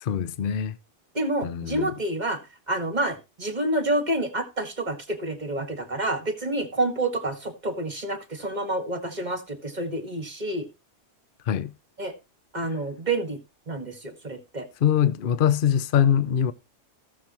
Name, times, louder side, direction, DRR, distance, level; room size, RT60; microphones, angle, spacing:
voice 1, 0.0-0.8 1.4-1.9 11.5-11.7 14.8-16.5, left 9 dB, 50° left, 0.8 m, -23 dB
voice 2, 1.1-2.4 2.7-10.7 12.0-12.1 12.5-13.4 13.7-14.7, right 1 dB, 35° right, 1.9 m, -28 dB
16.5 x 6.9 x 3.0 m
omnidirectional pair, 1.2 m